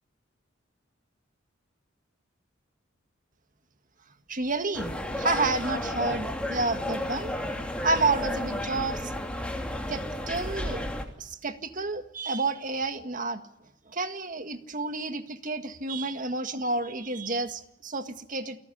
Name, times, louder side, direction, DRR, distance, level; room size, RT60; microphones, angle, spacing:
voice 1, 4.3-7.3 7.8-9.1 9.9-10.8 11.2-13.4 13.9-18.6, right 3 dB, 40° right, 8 dB, 1.8 m, -30 dB
sound 1, 4.7-11.0, left 1 dB, 5° left, 2.9 m, -32 dB
29.5 x 18.5 x 10.0 m, 0.81 s
head